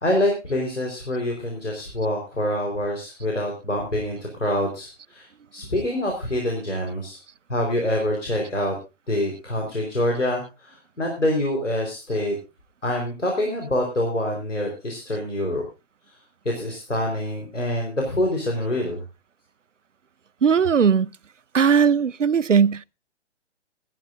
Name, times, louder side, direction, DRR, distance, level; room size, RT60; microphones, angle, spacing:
voice 1, 0.0-5.3 5.5-7.2 7.5-8.7 9.1-12.3 12.8-15.6 16.4-19.0, left 1 dB, 80° left, 4.3 m, -26 dB
voice 2, 20.4-21.1 21.5-22.8, right 6 dB, 85° right, 0.6 m, -18 dB
19.5 x 13.5 x 2.6 m
figure-of-eight pair, 135°, 36 cm